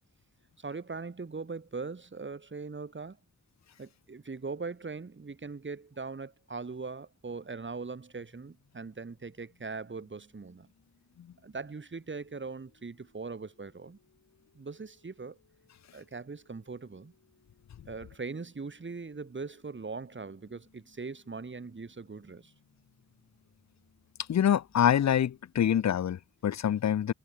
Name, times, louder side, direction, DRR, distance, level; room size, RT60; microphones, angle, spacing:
voice 1, 0.6-3.2 3.8-10.7 11.4-14.0 14.5-15.4 15.9-17.1 17.9-22.5, right 4 dB, 40° right, 1.3 m, -40 dB
sound 1, 7.8-25.4, left 5 dB, 85° left, 7.0 m, -69 dB
voice 2, 24.3-27.1, left 9 dB, 65° left, 0.5 m, -26 dB
wide cardioid pair, 75°, 29 cm